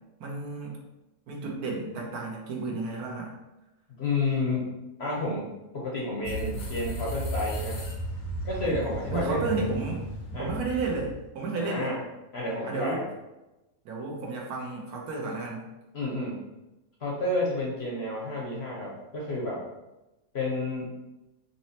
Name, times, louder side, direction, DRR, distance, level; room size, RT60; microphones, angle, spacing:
voice 1, 0.2-0.8 1.3-3.3 9.1-10.1 10.3-12.0 12.7-13.0 13.8-15.7, right 3 dB, 70° right, -1 dB, 1.2 m, -32 dB
voice 2, 4.0-4.7 5.0-7.8 8.4-9.4 10.3-10.5 11.5-12.0 12.3-13.0 15.9-16.4 17.0-19.6 20.3-20.9, left 2 dB, 55° left, -4 dB, 0.8 m, -30 dB
sound 1, 6.2-11.2, right 1 dB, 80° left, 1.5 m, -35 dB
4.1 x 3.0 x 2.8 m, 1.0 s
omnidirectional pair, 1.7 m